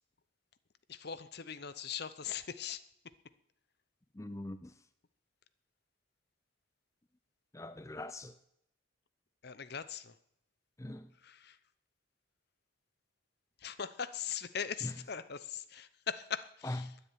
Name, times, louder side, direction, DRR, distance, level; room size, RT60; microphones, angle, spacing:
voice 1, 0.9-2.8 9.4-10.2 11.2-11.6 13.6-16.9, left 7 dB, 50° left, 0.7 m, -40 dB
voice 2, 4.1-4.8 7.5-8.4 10.8-11.1 14.8-14.9 16.6-17.0, left 1 dB, 15° left, 0.5 m, -41 dB
12.5 x 10.0 x 9.1 m
head